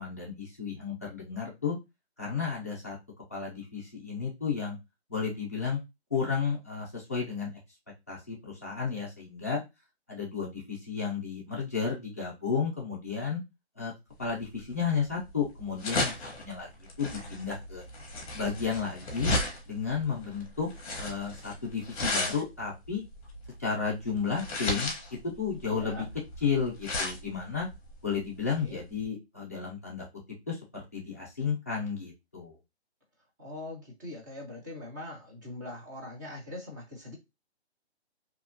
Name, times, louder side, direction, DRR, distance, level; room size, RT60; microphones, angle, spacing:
voice 1, 0.0-1.8 2.2-3.0 3.3-4.8 5.1-5.8 6.1-7.6 8.1-9.6 10.1-13.4 13.8-13.9 14.2-16.7 17.0-17.8 18.3-19.4 19.7-20.7 21.0-23.0 23.6-24.9 25.2-26.1 26.4-27.7 28.0-30.0 30.5-32.6, left 6 dB, 15° left, -6 dB, 0.4 m, -32 dB
sound 1, 14.3-29.0, left 2 dB, 30° left, 1.0 m, -35 dB
voice 2, 25.7-26.1 28.6-28.8 33.4-37.2, left 2 dB, 15° right, -3 dB, 0.7 m, -42 dB
2.8 x 2.4 x 2.6 m, 0.22 s
hypercardioid pair, 160°, 33 cm